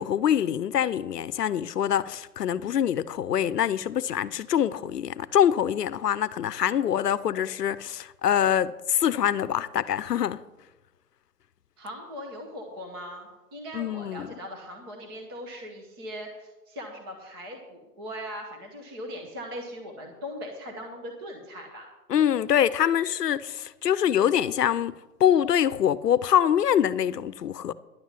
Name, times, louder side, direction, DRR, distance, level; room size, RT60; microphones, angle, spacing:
voice 1, 0.0-10.4 13.7-14.3 22.1-24.9 25.2-27.7, left 9 dB, 80° left, 0.8 m, -24 dB
voice 2, 11.8-21.9, equal, 15° right, 1.0 m, -40 dB
11.0 x 7.5 x 7.4 m
hypercardioid pair, 165°, 47 cm